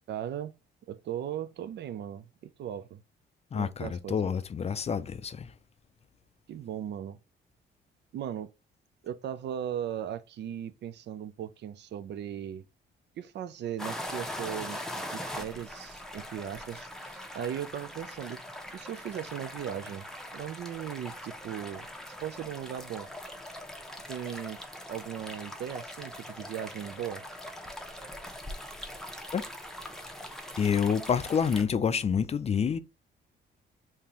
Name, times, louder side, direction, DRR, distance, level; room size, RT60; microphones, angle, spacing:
voice 1, 0.1-0.6 0.9-3.0 3.5-4.2 6.5-7.2 8.1-8.5 9.0-12.6 13.2-18.4 18.7-20.1 20.3-21.9 22.2-23.1 24.1-24.6 24.9-27.2, right 10 dB, 60° right, 0.4 m, -38 dB
voice 2, 3.5-5.5 29.3-29.4 30.6-32.8, left 7 dB, 35° left, 0.4 m, -28 dB
sound 1, 13.8-31.6, left 1 dB, ahead, 0.7 m, -41 dB
3.6 x 2.8 x 2.9 m
cardioid pair, 90°, 20 cm